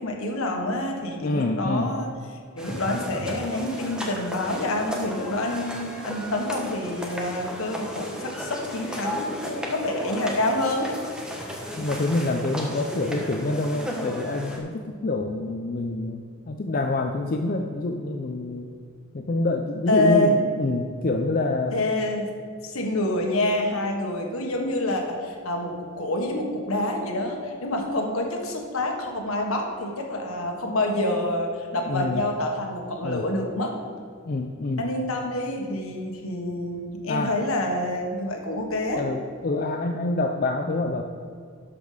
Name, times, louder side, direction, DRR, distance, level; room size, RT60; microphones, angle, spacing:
voice 1, 0.0-2.1 2.5-11.0 19.9-20.4 21.7-22.3 22.6-33.7 34.8-39.0, left 1 dB, 85° left, 2 dB, 1.5 m, -27 dB
voice 2, 1.2-1.9 11.7-18.7 19.1-21.8 31.9-32.2 33.0-33.2 34.2-34.9 37.1-37.4 39.0-41.0, left 2 dB, 45° left, 4 dB, 0.5 m, -26 dB
sound 1, 2.6-14.6, equal, 5° right, 1.1 m, -34 dB
12.5 x 5.3 x 5.0 m, 2.2 s
head